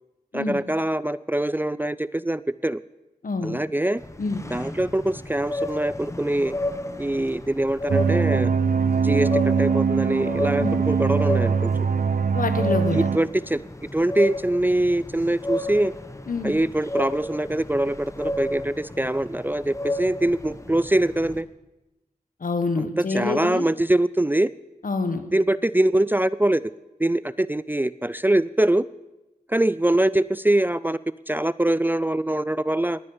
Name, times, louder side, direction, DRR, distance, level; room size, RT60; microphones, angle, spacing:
voice 1, 0.3-2.8 3.4-4.0 4.5-6.5 7.0-8.5 9.0-11.7 12.9-13.6 13.9-15.9 16.4-21.5 22.8-24.5 25.3-26.7 27.0-28.8 29.5-31.0 31.3-33.0, right 1 dB, 15° right, 18 dB, 0.4 m, -23 dB
voice 2, 3.2-3.6 4.2-4.4 10.6-10.8 12.3-13.1 16.3-16.5 22.4-23.6 24.8-25.2, left 3 dB, 70° left, 8 dB, 1.5 m, -26 dB
sound 1, 4.0-21.4, left 1 dB, 20° left, 1.1 m, -33 dB
sound 2, 7.9-13.2, right 6 dB, 65° right, 0.6 m, -22 dB
19.5 x 9.7 x 5.0 m, 0.98 s
cardioid pair, 55°, 15 cm